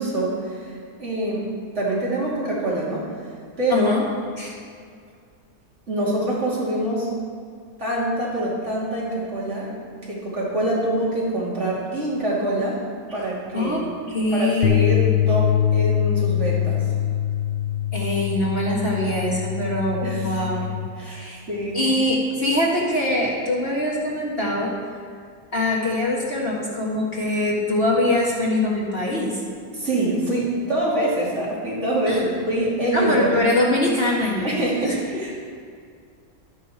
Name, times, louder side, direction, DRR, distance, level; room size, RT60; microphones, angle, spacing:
voice 1, 0.0-1.5 1.7-3.0 3.6-3.9 5.9-7.4 7.8-9.7 10.1-12.8 13.1-13.8 14.3-16.9 20.0-20.4 21.0-21.9 29.7-33.3 34.4-35.3, right 1 dB, 45° right, -7 dB, 3.0 m, -25 dB
voice 2, 3.7-4.0 4.4-4.5 13.5-13.8 14.1-15.0 17.9-20.7 21.1-21.4 21.7-24.7 25.5-29.4 32.0-32.2 32.9-34.5 34.8-34.9, left 1 dB, 40° left, -4 dB, 1.8 m, -23 dB
sound 1, 14.6-20.9, left 11 dB, 75° left, 0.5 m, -23 dB
11.5 x 10.5 x 4.3 m, 2.2 s
omnidirectional pair, 1.7 m